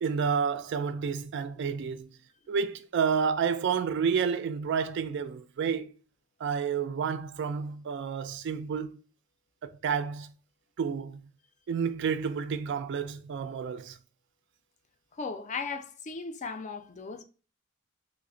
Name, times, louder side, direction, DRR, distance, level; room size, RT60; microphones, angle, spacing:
voice 1, 0.0-2.1 2.5-5.9 6.4-9.0 9.6-10.3 10.8-11.2 11.7-14.0, right 6 dB, 55° right, 0.3 m, -30 dB
voice 2, 15.2-17.2, left 4 dB, 35° left, 0.4 m, -37 dB
3.1 x 2.0 x 3.7 m
head